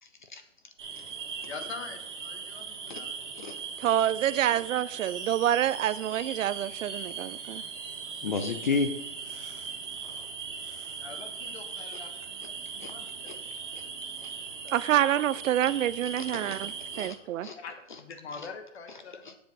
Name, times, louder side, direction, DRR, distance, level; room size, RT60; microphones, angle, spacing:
voice 1, 0.0-0.4 1.0-1.1 1.4-1.5 2.9-3.0 3.3-3.6 3.9-4.0 4.5-4.6 8.2-8.9 12.8-12.9 13.3-13.4 13.7-13.8 14.2-14.3 16.2-17.2 17.4-17.6 17.9-18.0 18.3-18.5 18.9-19.3, left 4 dB, 40° left, 0.5 m, -34 dB
sound 1, 0.8-17.1, right 5 dB, 40° right, 1.4 m, -39 dB
voice 2, 1.4-3.1 3.4-3.5 11.0-13.4 14.6-14.7 17.6-19.4, left 5 dB, 55° left, 1.3 m, -44 dB
voice 3, 3.8-7.6 14.7-16.7 17.0-17.5, right 11 dB, 85° right, 0.5 m, -27 dB
Fireworks, 5.0-11.1, right 4 dB, 15° right, 0.8 m, -52 dB
7.7 x 6.9 x 3.9 m
hypercardioid pair, 175°, 38 cm